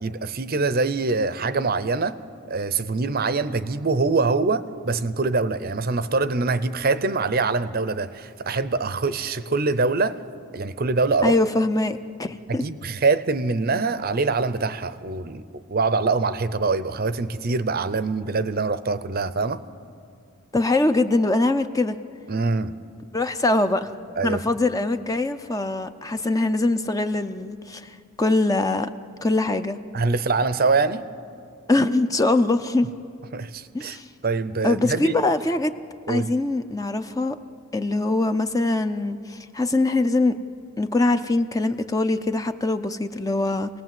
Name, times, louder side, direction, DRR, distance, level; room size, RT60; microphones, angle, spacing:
voice 1, 0.0-2.1 2.5-10.2 10.5-11.4 12.5-19.6 22.3-22.7 24.2-24.4 29.9-31.0 33.3-34.0 34.2-35.2 36.1-36.3, right 3 dB, 40° right, 13 dB, 0.6 m, -24 dB
voice 2, 11.2-12.6 20.5-22.0 23.1-23.9 24.2-28.9 29.2-29.8 31.7-32.9 33.7-34.1 34.6-35.7 36.1-37.4 37.7-40.3 40.8-43.7, left 2 dB, 15° left, 9 dB, 0.5 m, -23 dB
27.5 x 18.5 x 7.6 m, 2.4 s
head